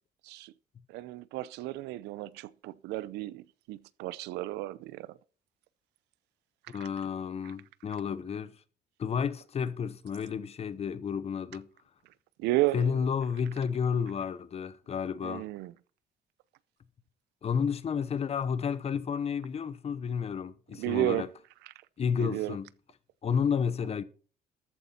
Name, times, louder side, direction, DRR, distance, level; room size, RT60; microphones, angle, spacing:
voice 1, 0.9-5.1 12.4-12.9 15.2-15.7 20.8-21.2 22.2-22.6, right 17 dB, 90° right, 0.6 m, -32 dB
voice 2, 6.7-8.6 9.0-11.7 12.7-15.5 17.4-21.3 22.0-22.7 23.2-24.0, left 6 dB, 35° left, 0.9 m, -31 dB
13.5 x 9.3 x 4.3 m
cardioid pair, 110°, 17 cm